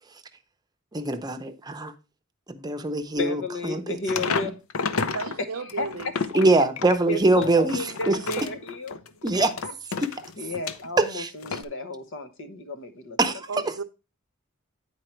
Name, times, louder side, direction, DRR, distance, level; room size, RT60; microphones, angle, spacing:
voice 1, 0.9-1.9 2.5-4.0 4.4-4.5 6.3-8.2 9.2-9.5 10.0-10.1 11.0-11.3 13.2-13.8, right 2 dB, 20° right, 0.7 m, -23 dB
voice 2, 3.2-4.5 5.7-5.9 7.1-9.0 10.4-11.2 11.5-13.2, left 2 dB, 65° left, 1.1 m, -32 dB
sound 1, 4.1-5.4 5.7-11.1 11.4-11.6, left 4 dB, 85° left, 0.6 m, -31 dB
voice 3, 5.1-6.1 13.5-13.8, right 5 dB, 75° right, 0.6 m, -34 dB
9.1 x 4.7 x 4.4 m
head